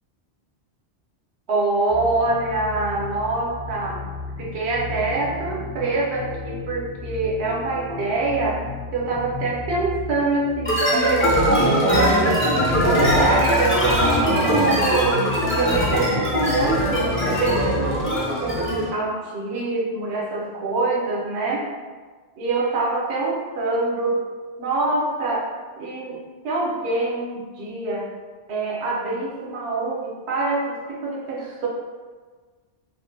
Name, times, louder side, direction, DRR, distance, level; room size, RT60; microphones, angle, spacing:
voice 1, 1.5-4.0 4.4-8.6 8.9-12.4 12.8-15.3 15.5-21.6 22.4-24.2 24.6-25.5 25.8-26.2 26.4-28.1 28.5-31.7, right 3 dB, 75° right, -3 dB, 0.9 m, -25 dB
sound 1, 1.9-18.0, left 4 dB, 70° left, 1.1 m, -34 dB
sound 2, 10.6-18.9, equal, 15° left, 0.5 m, -21 dB
3.6 x 2.1 x 2.7 m, 1.4 s
omnidirectional pair, 1.1 m